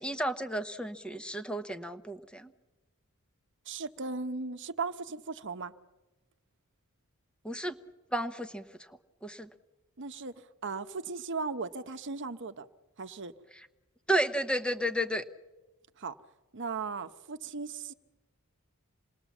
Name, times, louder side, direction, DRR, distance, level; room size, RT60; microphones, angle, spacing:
voice 1, 0.0-2.5 7.4-7.7 8.1-8.6 9.2-9.5 14.1-15.2, right 1 dB, 5° left, 9 dB, 0.9 m, -32 dB
voice 2, 3.7-5.7 10.0-10.3 10.6-12.7 13.0-13.3 16.0-16.2 16.5-17.9, right 4 dB, 55° right, 10 dB, 0.9 m, -37 dB
27.0 x 20.5 x 7.2 m, 1.1 s
head